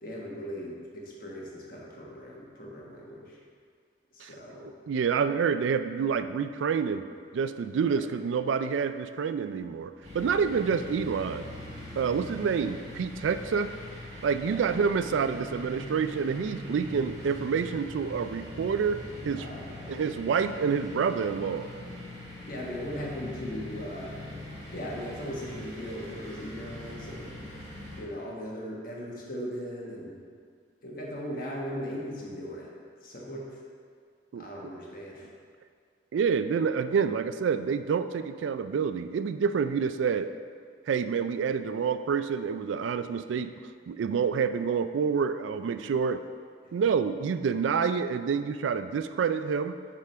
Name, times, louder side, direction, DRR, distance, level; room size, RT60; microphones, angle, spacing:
voice 1, 0.0-3.4 4.1-4.7 7.8-8.0 14.5-14.6 19.3-20.0 22.5-24.2 24.7-27.3 28.0-30.1 30.8-32.7 33.0-33.6 34.3-35.3 46.6-46.7, equal, 50° left, -3 dB, 1.3 m, -38 dB
voice 2, 4.9-7.0 7.3-11.5 12.0-13.7 14.2-19.5 19.9-21.7 34.3-34.5 36.1-40.3 40.9-43.5 43.9-46.2 46.7-49.8, right 6 dB, 90° right, 11 dB, 0.3 m, -28 dB
sound 1, 10.0-28.0, left 1 dB, 35° right, 1.5 m, -42 dB
7.5 x 3.7 x 5.5 m, 2.1 s
head